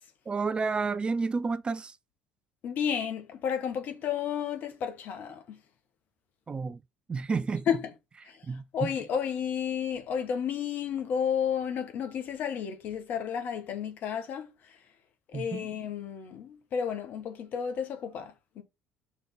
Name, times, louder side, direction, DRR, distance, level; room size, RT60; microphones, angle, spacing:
voice 1, 0.3-2.0 6.5-6.8 7.1-7.7 8.4-8.9 15.3-15.7, right 4 dB, 25° right, 0.5 m, -30 dB
voice 2, 2.6-5.6 7.7-7.9 8.3-8.4 8.7-14.8 15.3-18.6, left 8 dB, 50° left, 1.4 m, -32 dB
5.4 x 3.6 x 5.6 m
hypercardioid pair, 60°, 4 cm